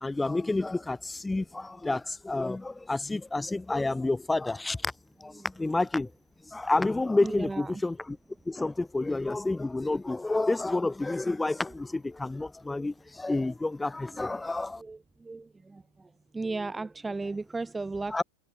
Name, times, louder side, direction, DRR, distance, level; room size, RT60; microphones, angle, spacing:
voice 1, 0.0-4.9 5.2-6.1 6.5-8.2 8.5-14.8 18.1-18.2, left 2 dB, 5° left, 1.2 m, -29 dB
voice 2, 7.2-7.8 8.5-8.6 14.8-15.8 16.3-18.2, right 3 dB, 10° right, 0.6 m, -35 dB
figure-of-eight pair, 90°, 0 cm